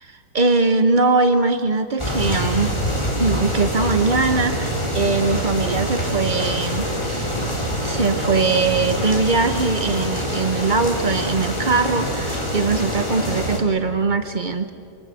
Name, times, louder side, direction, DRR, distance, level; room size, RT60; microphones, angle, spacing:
voice 1, 0.3-2.7 3.2-7.3 7.8-14.7, right 3 dB, 55° right, 8 dB, 0.5 m, -21 dB
sound 1, 2.0-13.6, equal, 15° left, 3.4 m, -25 dB
27.0 x 26.0 x 7.6 m, 2.5 s
omnidirectional pair, 2.2 m